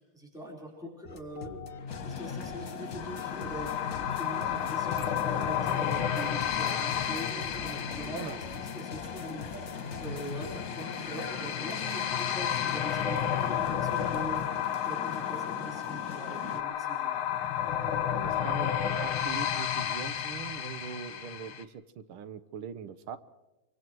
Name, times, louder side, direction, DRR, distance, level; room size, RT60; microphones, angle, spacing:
voice 1, 0.0-17.2, right 1 dB, ahead, -1 dB, 4.4 m, -43 dB
sound 1, 1.0-11.3, left 5 dB, 40° left, 1.2 m, -42 dB
sound 2, 1.9-16.6, left 6 dB, 60° left, 2.5 m, -41 dB
sound 3, 3.0-21.6, left 9 dB, 80° left, 1.9 m, -32 dB
voice 2, 18.2-23.2, right 7 dB, 80° right, 13 dB, 1.8 m, -41 dB
25.5 x 23.5 x 4.6 m, 1.0 s
omnidirectional pair, 2.3 m